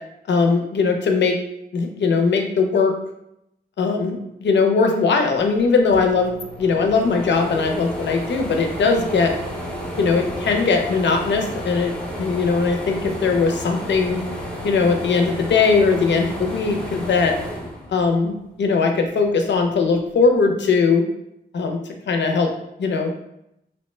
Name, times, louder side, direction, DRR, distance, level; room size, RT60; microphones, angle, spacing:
voice 1, 0.3-1.4 1.7-2.9 3.8-9.3 10.0-11.9 12.2-14.2 14.6-17.3 17.9-21.0 21.5-21.8 22.1-22.5 22.8-23.1, left 4 dB, 85° left, 4 dB, 0.5 m, -19 dB
sound 1, 5.9-18.5 18.9-20.1, equal, 5° left, 0.4 m, -32 dB
2.8 x 2.1 x 3.1 m, 0.82 s
wide cardioid pair, 165°, 18 cm